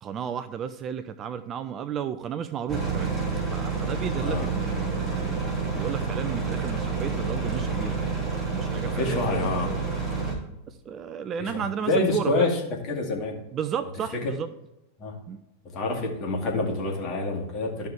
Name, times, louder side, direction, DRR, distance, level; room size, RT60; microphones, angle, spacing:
voice 1, 0.0-3.1 3.5-5.4 5.7-9.8 10.3-10.4 10.7-12.5 13.5-14.5 15.3-15.4, right 8 dB, 30° right, 11 dB, 0.5 m, -33 dB
sound 1, 2.7-10.3, right 4 dB, 5° right, 3.0 m, -29 dB
voice 2, 4.2-4.5 8.9-9.7 11.4-13.4 14.1-14.2 15.0-15.2 15.7-17.9, left 2 dB, 35° left, 0 dB, 2.3 m, -27 dB
13.0 x 5.5 x 3.5 m, 0.88 s
figure-of-eight pair, 90°, 0 cm